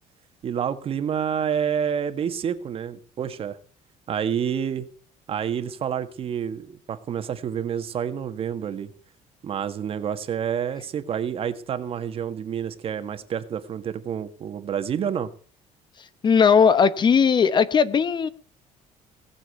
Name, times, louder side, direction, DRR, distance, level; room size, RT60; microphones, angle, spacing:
voice 1, 0.4-3.6 4.1-4.9 5.3-8.9 9.4-15.3, right 8 dB, 45° right, 1.6 m, -28 dB
voice 2, 16.2-18.3, left 6 dB, 35° left, 1.0 m, -18 dB
19.0 x 7.5 x 8.1 m
cardioid pair, 135°, 14 cm